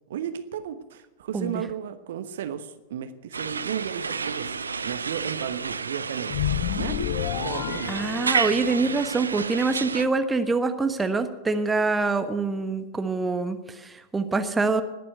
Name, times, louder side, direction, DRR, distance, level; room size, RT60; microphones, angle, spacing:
voice 1, 0.1-6.4 6.8-8.0, right 9 dB, 60° right, 10 dB, 1.0 m, -34 dB
sound 1, 3.3-10.1, right 5 dB, 75° right, 0.6 m, -31 dB
sound 2, 6.3-8.9, left 13 dB, 50° left, 0.6 m, -29 dB
voice 2, 7.9-14.8, right 3 dB, 10° right, 9 dB, 1.2 m, -25 dB
20.0 x 7.6 x 9.4 m, 1.1 s
figure-of-eight pair, 90°, 0 cm